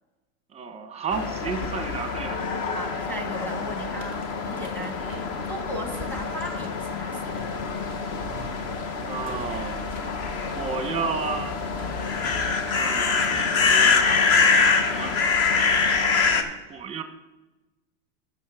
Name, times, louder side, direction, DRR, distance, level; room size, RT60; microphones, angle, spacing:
voice 1, 0.5-2.4 5.0-5.3 9.1-10.0 10.5-11.6 12.5-14.1 14.4-15.2 16.4-17.0, right 5 dB, 15° right, 9 dB, 0.9 m, -33 dB
sound 1, 1.1-16.4, left 4 dB, 35° left, 1.0 m, -25 dB
voice 2, 2.7-5.2 5.5-7.5, equal, 5° left, 4 dB, 1.6 m, -36 dB
sound 2, 3.8-14.2, equal, 20° left, 1.9 m, -46 dB
14.5 x 6.4 x 3.6 m, 1.1 s
supercardioid pair, 130°, 39 cm